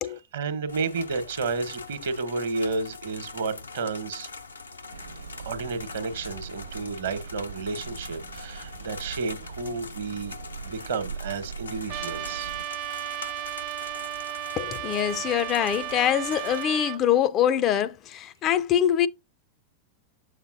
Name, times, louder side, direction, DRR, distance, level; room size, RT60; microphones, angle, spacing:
voice 1, 0.3-4.3 5.4-10.4 10.6-12.6, right 4 dB, 60° right, 1.0 m, -31 dB
sound 1, 0.7-16.6, left 4 dB, 75° left, 0.6 m, -43 dB
sound 2, 4.9-12.7, right 5 dB, 85° right, 0.8 m, -41 dB
Trumpet, 11.9-17.0, right 13 dB, 45° right, 0.6 m, -34 dB
voice 2, 14.6-19.1, left 10 dB, 35° left, 0.4 m, -24 dB
7.1 x 6.6 x 2.5 m
figure-of-eight pair, 90°, 0 cm